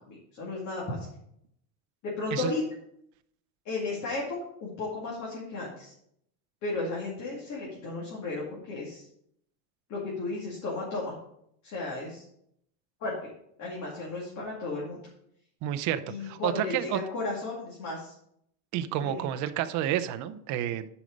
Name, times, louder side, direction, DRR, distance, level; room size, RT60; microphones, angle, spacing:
voice 1, 0.1-1.1 2.0-2.6 3.7-5.9 6.6-9.0 9.9-11.1 11.6-12.2 13.0-13.3 13.6-15.0 16.1-18.1 19.0-19.2, left 3 dB, 35° left, -4 dB, 2.4 m, -34 dB
voice 2, 15.6-17.0 18.7-20.9, right 11 dB, 40° right, 10 dB, 0.6 m, -30 dB
9.9 x 5.3 x 5.1 m, 0.73 s
cardioid pair, 155°, 47 cm